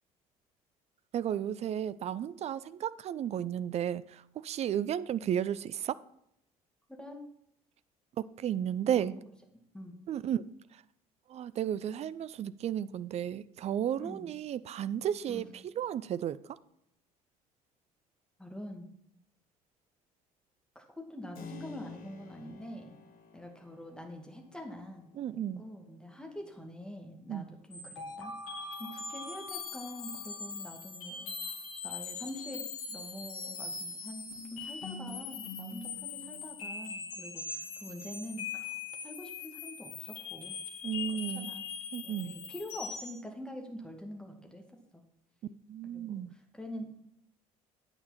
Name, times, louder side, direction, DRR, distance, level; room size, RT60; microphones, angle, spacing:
voice 1, 1.1-6.0 8.2-9.2 10.1-10.4 10.7-10.8 11.3-16.6 25.2-25.7 27.3-27.5 40.8-41.5 41.9-42.3 45.7-46.3, right 10 dB, 35° right, 0.5 m, -33 dB
voice 2, 8.8-9.2 9.7-10.0 14.0-14.3 15.3-15.5 18.4-18.9 20.8-23.0 23.3-25.1 25.6-28.3 28.8-31.6 31.8-38.8 39.0-40.6 41.1-41.7 42.0-45.0 45.9-46.2 46.5-46.9, left 1 dB, 5° left, 2.2 m, -45 dB
Keyboard (musical), 21.3-29.9, left 5 dB, 50° left, 1.2 m, -54 dB
sound 1, 27.7-43.2, left 5 dB, 70° left, 1.5 m, -41 dB
9.4 x 8.9 x 4.2 m
figure-of-eight pair, 55°, 19 cm